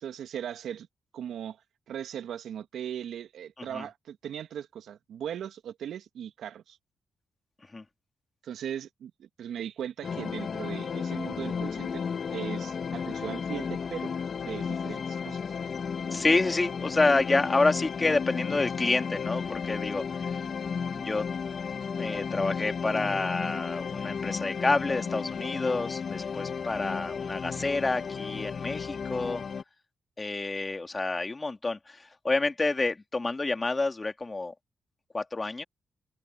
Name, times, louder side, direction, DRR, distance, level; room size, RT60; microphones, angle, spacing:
voice 1, 0.0-0.9 1.1-1.6 1.9-6.8 8.4-12.0 12.3-14.1 14.4-15.4, right 9 dB, 75° right, 2.2 m, -38 dB
sound 1, 10.0-29.6, left 6 dB, 60° left, 2.0 m, -34 dB
voice 2, 16.1-20.3 20.9-21.3 22.0-29.4 30.2-34.5 35.1-35.6, left 3 dB, 30° left, 3.0 m, -28 dB
supercardioid pair, 45°, 0 cm